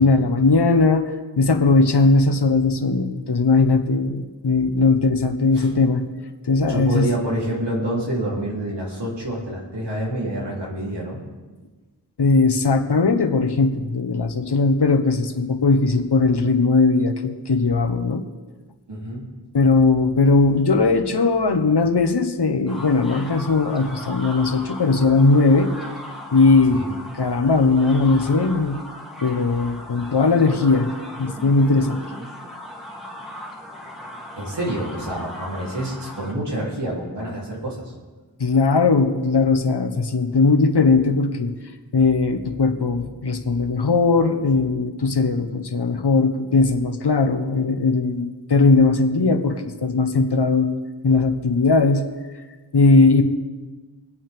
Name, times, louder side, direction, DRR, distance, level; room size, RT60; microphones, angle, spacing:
voice 1, 0.0-6.0 6.5-7.1 12.2-18.2 19.5-25.7 26.3-26.8 27.2-28.8 29.2-32.0 38.4-41.5 41.9-50.7 51.0-52.0 52.7-53.2, left 3 dB, 80° left, 6 dB, 1.2 m, -19 dB
voice 2, 6.7-11.2 18.9-19.3 26.7-26.9 33.7-33.8 34.4-37.9, right 1 dB, 85° right, -4 dB, 3.5 m, -27 dB
sound 1, 22.7-36.3, left 1 dB, ahead, 2.5 m, -38 dB
23.5 x 8.5 x 3.6 m, 1.3 s
wide cardioid pair, 60°, 40 cm